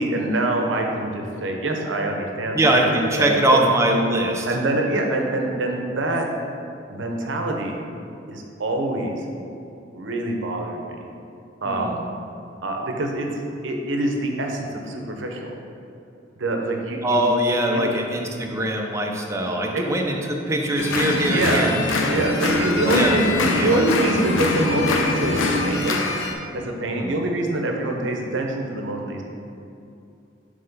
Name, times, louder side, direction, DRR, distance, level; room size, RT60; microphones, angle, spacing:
voice 1, 0.0-2.9 3.2-3.6 4.5-6.3 6.9-7.8 8.3-9.2 9.9-11.0 11.6-12.0 12.6-13.3 13.6-15.5 16.4-17.2 17.7-17.8 19.4-19.8 21.2-21.7 22.0-23.2 23.6-26.1 26.5-29.2, right 1 dB, 70° right, 2 dB, 0.7 m, -25 dB
voice 2, 2.5-4.5 11.6-11.9 17.0-21.8 22.8-23.8 26.9-27.2, right 1 dB, 15° right, 1 dB, 0.5 m, -22 dB
sound 1, 20.8-26.3, left 2 dB, 85° left, 0.6 m, -23 dB
5.7 x 3.2 x 5.4 m, 2.7 s
head